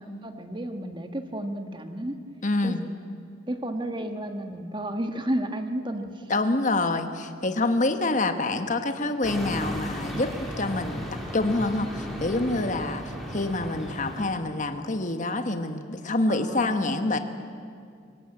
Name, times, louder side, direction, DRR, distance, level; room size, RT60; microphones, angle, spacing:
voice 1, 0.2-2.2 2.6-2.7 3.5-6.2 16.3-17.2, right 1 dB, 25° right, 6 dB, 1.6 m, -32 dB
voice 2, 2.4-2.8 6.3-13.0 13.3-17.2, left 2 dB, 40° left, 7 dB, 1.3 m, -26 dB
sound 1, 9.2-14.3, equal, ahead, 3.6 m, -35 dB
25.0 x 17.5 x 8.9 m, 2.3 s
head